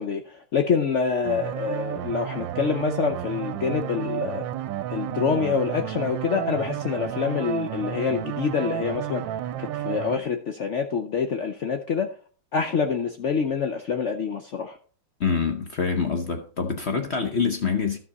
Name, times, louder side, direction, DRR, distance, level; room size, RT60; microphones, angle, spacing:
voice 1, 0.0-4.4 4.9-9.2 9.6-12.1 12.5-14.8, left 6 dB, 80° left, 0.6 m, -26 dB
sound 1, 1.2-10.2, right 11 dB, 75° right, 1.3 m, -32 dB
voice 2, 15.2-18.0, left 5 dB, 50° left, 0.8 m, -25 dB
12.5 x 6.0 x 4.1 m
omnidirectional pair, 2.1 m